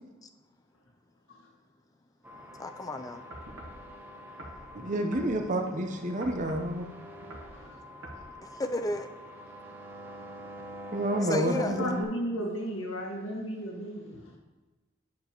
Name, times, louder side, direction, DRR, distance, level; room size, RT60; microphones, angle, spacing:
sound 1, 2.2-12.0, equal, 10° right, 0.8 m, -45 dB
voice 1, 2.6-3.2 8.5-9.1 11.3-11.7, left 2 dB, 20° left, 8 dB, 0.4 m, -32 dB
sound 2, 3.3-3.8 4.4-5.7 6.2-6.7 7.2-7.5 8.0-8.2 8.9-9.0, right 1 dB, 70° right, 1.2 m, -45 dB
voice 2, 4.7-6.9 10.9-12.0, right 1 dB, 40° right, 4 dB, 0.8 m, -29 dB
voice 3, 11.4-14.3, equal, 85° left, -1 dB, 1.8 m, -34 dB
9.5 x 6.8 x 3.0 m, 1.2 s
head